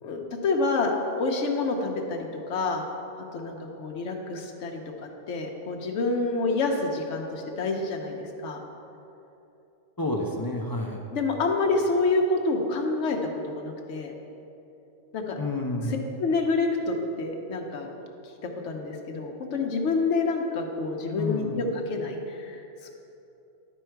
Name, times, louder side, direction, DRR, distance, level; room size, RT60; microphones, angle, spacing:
voice 1, 0.0-2.8 3.3-4.8 5.3-8.6 11.1-13.2 13.4-14.1 15.1-15.4 15.9-17.9 18.2-18.3 18.6-22.9, left 3 dB, 75° left, 2 dB, 1.1 m, -28 dB
voice 2, 10.0-11.0 15.4-16.0 21.2-21.6, left 2 dB, 35° left, 1 dB, 0.3 m, -29 dB
11.0 x 4.6 x 4.5 m, 2.8 s
omnidirectional pair, 1.2 m